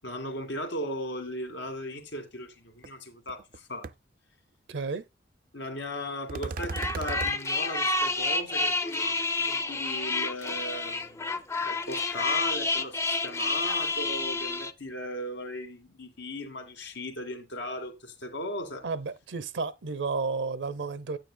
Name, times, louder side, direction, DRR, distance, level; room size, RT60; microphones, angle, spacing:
voice 1, 0.0-3.9 5.5-18.8, left 1 dB, 80° left, 2.1 m, -37 dB
sound 1, 2.8-2.9 3.3-3.6 3.8-3.9 6.3-7.4, right 4 dB, 45° right, 0.3 m, -35 dB
voice 2, 4.7-5.0 18.8-21.2, right 4 dB, 75° right, 0.7 m, -32 dB
sound 2, 6.6-14.7, left 3 dB, 15° left, 0.4 m, -29 dB
9.7 x 8.8 x 2.2 m
head